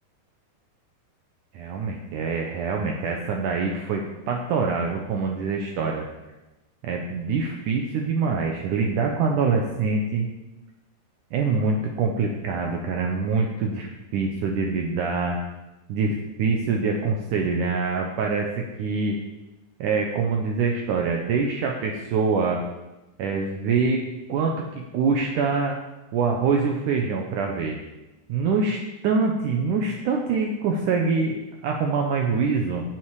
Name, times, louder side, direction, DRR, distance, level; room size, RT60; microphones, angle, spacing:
voice 1, 1.5-6.1 6.8-10.3 11.3-15.4 15.9-19.2 19.8-22.6 23.2-24.0 24.3-25.7 26.1-27.8 28.3-32.8, right 4 dB, 80° right, 1 dB, 1.8 m, -25 dB
18.5 x 7.7 x 4.9 m, 1.0 s
omnidirectional pair, 5.1 m